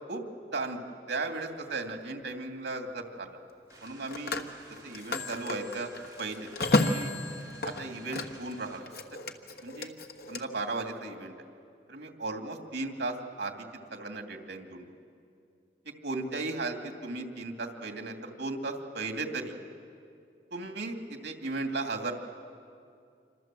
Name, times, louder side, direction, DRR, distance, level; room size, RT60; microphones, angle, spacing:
voice 1, 1.1-3.4 3.8-4.4 4.8-5.9 6.2-6.5 6.8-7.1 7.6-8.9 9.6-10.0 10.3-11.3 11.9-13.7 13.9-14.9 16.0-19.5 20.5-22.2, right 3 dB, 85° right, 4 dB, 2.6 m, -36 dB
Telephone, 1.5-1.7 3.7-8.5 8.8-10.4, left 2 dB, 60° left, 1.4 m, -32 dB
sound 1, 3.7-8.8, right 2 dB, 20° right, 3.9 m, -54 dB
27.0 x 26.0 x 7.7 m, 2.4 s
head